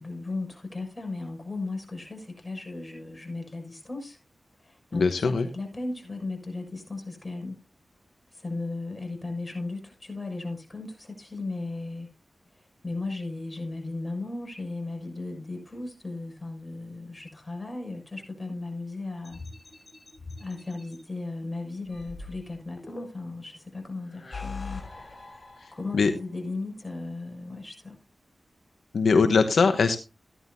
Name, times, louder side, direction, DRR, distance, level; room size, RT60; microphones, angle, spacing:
voice 1, 0.0-4.2 4.6-7.6 8.3-12.1 12.8-19.4 20.4-24.8 25.7-28.0, left 2 dB, 30° left, 6.7 m, -36 dB
voice 2, 4.9-5.5 25.9-26.1 28.9-30.0, left 4 dB, 85° left, 1.0 m, -21 dB
sound 1, 19.2-21.0 21.9-23.4 24.0-26.2, left 4 dB, 45° left, 6.9 m, -42 dB
15.5 x 11.0 x 2.7 m
cardioid pair, 50°, 0 cm